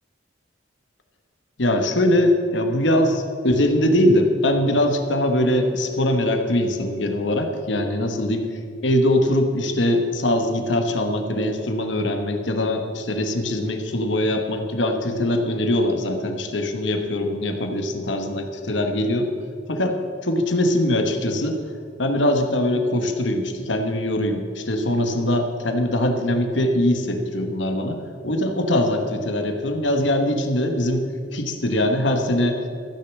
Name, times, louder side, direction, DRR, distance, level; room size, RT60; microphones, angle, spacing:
voice 1, 1.6-8.5 8.8-19.3 19.7-20.0 20.2-21.6 22.0-32.7, left 1 dB, 75° left, 5 dB, 1.3 m, -22 dB
14.5 x 6.7 x 7.3 m, 2.3 s
head